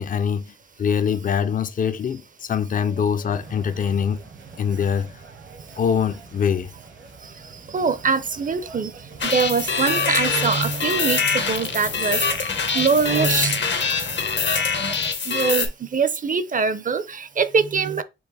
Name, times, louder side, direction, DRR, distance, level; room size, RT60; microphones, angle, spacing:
voice 1, 0.0-4.2 4.6-5.2 5.8-6.7, left 7 dB, 45° left, 0.4 m, -23 dB
sound 1, 3.3-15.1, right 4 dB, 80° right, 1.2 m, -41 dB
voice 2, 7.7-8.9 9.2-12.2 12.7-13.6 15.3-18.0, right 5 dB, 45° right, 0.5 m, -23 dB
sound 2, 9.2-15.7, left 5 dB, 70° left, 0.9 m, -24 dB
4.6 x 2.5 x 4.0 m
cardioid pair, 75°, 19 cm